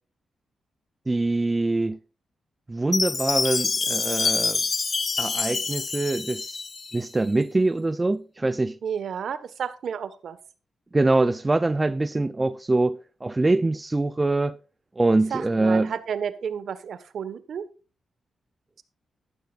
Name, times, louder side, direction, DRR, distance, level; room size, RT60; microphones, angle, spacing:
voice 1, 1.1-2.0 2.7-4.6 5.2-6.6 6.9-8.8 10.9-14.6 15.0-15.9, right 2 dB, 20° right, 0.6 m, -24 dB
Chime, 2.9-7.1, left 4 dB, 40° left, 0.5 m, -26 dB
voice 2, 8.8-10.4 15.3-17.6, right 7 dB, 70° right, 1.4 m, -31 dB
13.5 x 12.5 x 2.5 m
cardioid pair, 85°, 0 cm